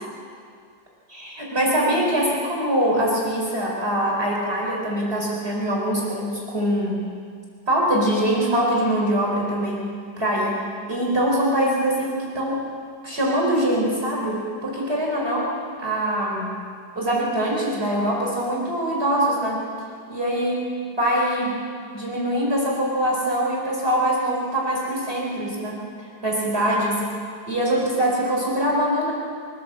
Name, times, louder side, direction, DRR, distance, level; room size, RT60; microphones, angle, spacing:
voice 1, 1.1-7.1 7.7-9.9 10.2-12.6 13.0-16.5 17.0-19.7 20.1-20.5 21.0-21.6 21.9-25.8 26.2-27.0 27.5-29.1, right 1 dB, 30° right, -3 dB, 4.7 m, -23 dB
24.5 x 16.0 x 7.6 m, 2.2 s
omnidirectional pair, 2.0 m